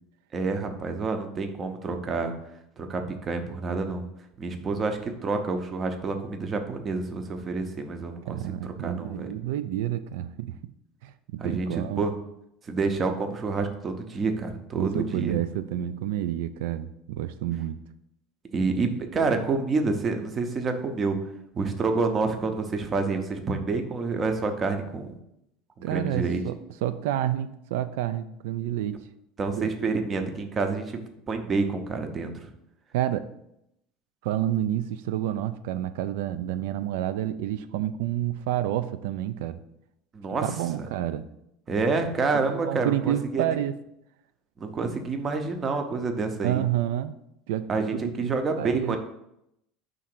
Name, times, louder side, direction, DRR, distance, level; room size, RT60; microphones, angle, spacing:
voice 1, 0.3-2.3 2.8-4.0 4.4-8.4 8.6-9.3 11.4-12.1 12.6-15.4 18.5-21.2 21.5-25.1 25.9-26.4 29.4-31.0 31.3-32.5 40.1-40.5 40.8-40.9 41.7-43.4 44.6-46.6 47.7-49.0, right 4 dB, 20° right, 6 dB, 0.6 m, -28 dB
voice 2, 8.3-10.5 11.0-12.0 14.7-17.8 25.8-26.6 26.8-29.0 29.6-29.9 32.9-33.3 34.2-39.6 40.4-41.3 42.5-43.7 46.4-47.2 47.5-49.0, right 12 dB, 80° right, 11 dB, 0.3 m, -29 dB
5.5 x 3.7 x 6.0 m, 0.80 s
cardioid pair, 175°, 0 cm